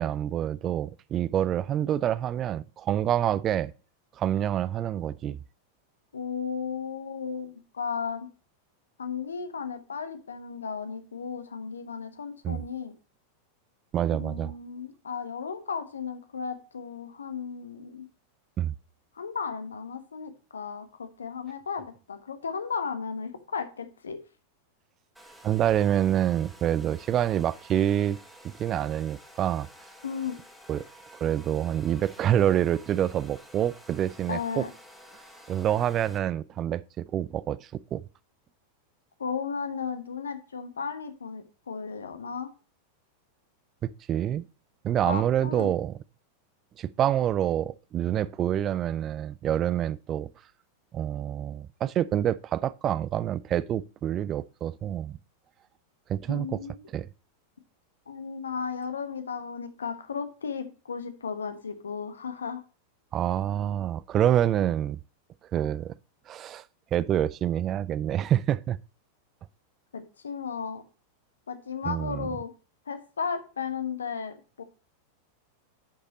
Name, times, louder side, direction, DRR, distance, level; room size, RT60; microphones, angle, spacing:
voice 1, 0.0-3.7 4.2-5.4 12.4-12.6 13.9-14.5 18.6-18.7 25.4-28.2 28.4-29.7 30.7-30.8 31.2-34.6 35.5-37.6 37.9-38.0 43.8-44.5 44.8-46.0 46.8-50.3 50.9-55.2 56.1-56.6 56.9-57.1 63.1-65.0 65.5-65.9 66.3-66.6 66.9-68.8 71.9-72.3, right 11 dB, 30° right, 0.4 m, -27 dB
voice 2, 6.1-8.3 9.0-12.9 14.1-18.1 19.1-24.2 30.0-30.4 34.3-34.7 39.2-42.5 45.0-45.7 56.3-56.9 58.1-62.6 69.9-70.8 71.5-72.5 72.9-74.6, left 6 dB, 70° left, 1.2 m, -35 dB
Domestic sounds home sounds, 25.1-36.2, equal, ahead, 1.8 m, -51 dB
10.0 x 6.4 x 2.9 m
figure-of-eight pair, 90°, 0 cm